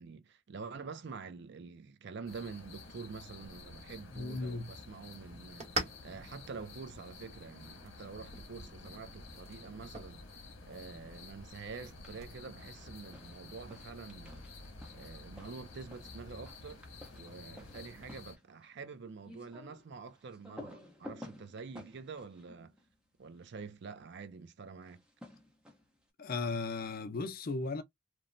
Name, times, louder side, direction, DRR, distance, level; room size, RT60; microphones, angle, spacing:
voice 1, 0.0-5.7 6.0-14.5 14.9-16.8 17.1-22.7 23.2-25.0, right 5 dB, 60° right, 0.5 m, -47 dB
sound 1, 2.3-18.4, left 3 dB, 80° left, 0.9 m, -51 dB
sound 2, 3.5-12.4, right 2 dB, 35° right, 0.9 m, -46 dB
voice 2, 4.1-4.7 26.2-27.8, left 3 dB, 50° left, 0.5 m, -36 dB
sound 3, 11.8-12.3 12.6-23.6 24.8-26.0, left 1 dB, 5° right, 0.8 m, -54 dB
3.0 x 2.1 x 2.5 m
head